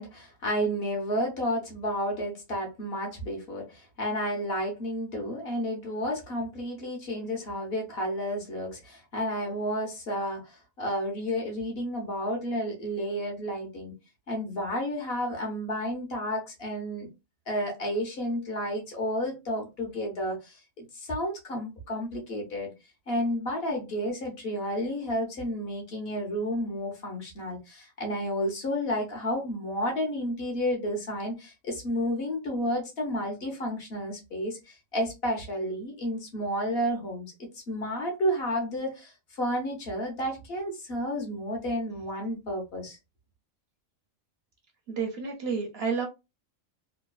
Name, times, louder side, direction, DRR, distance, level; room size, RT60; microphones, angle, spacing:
voice 1, 0.0-13.9 14.3-17.1 17.5-22.7 23.1-37.3 37.5-43.0, equal, 55° left, 1.1 m, -31 dB
voice 2, 44.9-46.1, right 5 dB, 60° right, 0.7 m, -30 dB
3.0 x 2.2 x 2.3 m
omnidirectional pair, 1.4 m